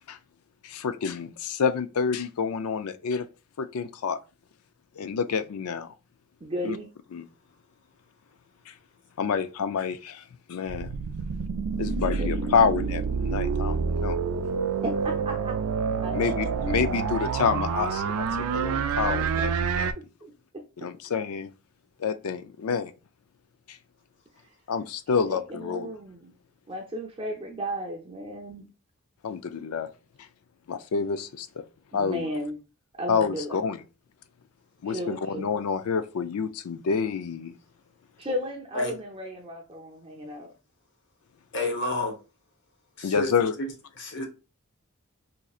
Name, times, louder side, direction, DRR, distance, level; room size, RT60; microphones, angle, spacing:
voice 1, 0.6-3.3 3.6-4.2 5.0-5.9 6.6-6.8 7.1-7.3 8.7-8.8 9.2-10.2 10.5-10.9 11.8-14.2 16.1-19.9 20.8-21.5 22.0-22.9 23.7-23.8 24.7-25.9 29.2-29.9 30.7-31.6 31.9-32.3 33.1-33.8 34.8-37.5 43.0-43.5, left 6 dB, 90° left, 0.4 m, -28 dB
voice 2, 6.4-6.9 12.2-12.3 14.8-15.6 16.0-17.2 18.7-19.5 20.2-20.6 25.3-26.3 26.7-28.7 31.9-32.6 33.0-33.6 34.9-35.6 38.2-40.5, equal, 25° right, 0.5 m, -35 dB
sound 1, 10.6-19.9, right 5 dB, 85° right, 0.4 m, -28 dB
voice 3, 41.5-42.2 43.0-43.3 43.6-43.7 44.0-44.2, left 2 dB, 55° left, 1.0 m, -29 dB
4.2 x 2.6 x 2.4 m
head